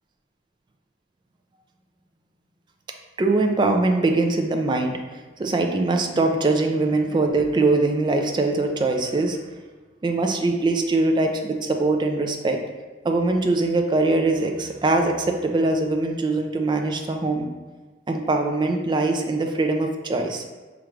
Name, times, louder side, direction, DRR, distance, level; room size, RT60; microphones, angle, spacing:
voice 1, 3.2-5.0 5.4-9.4 10.0-12.6 13.0-17.5 18.1-20.4, right 2 dB, 25° right, 3 dB, 0.3 m, -22 dB
4.5 x 2.5 x 3.1 m, 1.3 s
head